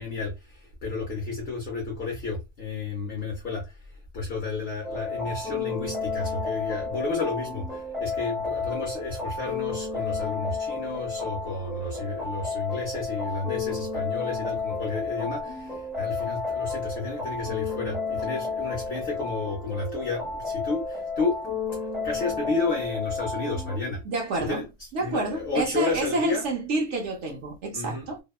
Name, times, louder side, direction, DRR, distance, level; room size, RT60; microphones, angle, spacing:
voice 1, 0.0-21.4 21.7-24.0 24.5-24.6 25.0-26.5 27.7-28.1, left 3 dB, 55° left, 0.7 m, -32 dB
sound 1, 4.8-23.8, left 4 dB, ahead, 0.5 m, -32 dB
voice 2, 24.1-24.6 24.9-28.2, right 2 dB, 70° right, 0.8 m, -28 dB
2.8 x 2.1 x 2.2 m
omnidirectional pair, 1.4 m